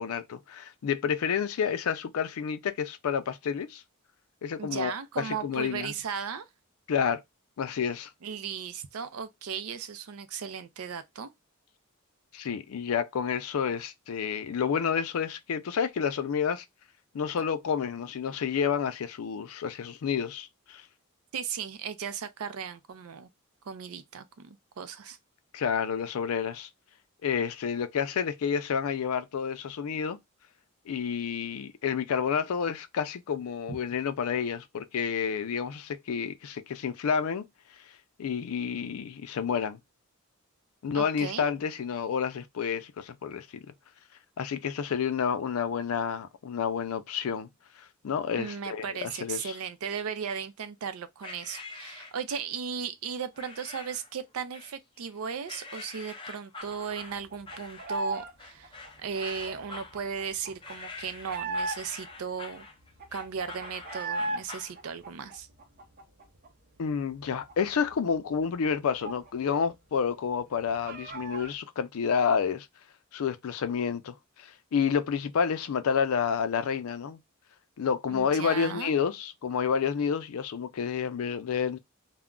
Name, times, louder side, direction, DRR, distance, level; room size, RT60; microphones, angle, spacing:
voice 1, 0.0-3.8 4.4-5.9 6.9-7.2 7.6-8.1 12.3-16.6 17.1-20.8 25.5-26.7 27.2-30.2 30.9-37.4 38.2-39.8 40.8-43.6 44.4-47.5 47.8-49.6 66.8-72.7 73.1-77.2 77.8-81.8, left 6 dB, 80° left, 0.4 m, -29 dB
voice 2, 4.6-6.5 8.2-11.3 21.3-23.3 23.6-25.2 33.7-33.8 40.9-41.5 48.4-62.6 63.1-65.5 78.1-78.9, right 6 dB, 85° right, 0.5 m, -36 dB
sound 1, 51.2-52.5 53.3-54.1 54.5-55.1 55.5-64.8, left 3 dB, 25° left, 0.5 m, -45 dB
sound 2, 56.7-58.3 58.6-62.1 62.5-62.6 62.8-64.4 64.8-66.5 66.8-66.9 67.2-69.7 69.9-70.0 70.4-71.5, right 2 dB, 45° right, 0.6 m, -37 dB
2.3 x 2.1 x 3.6 m
head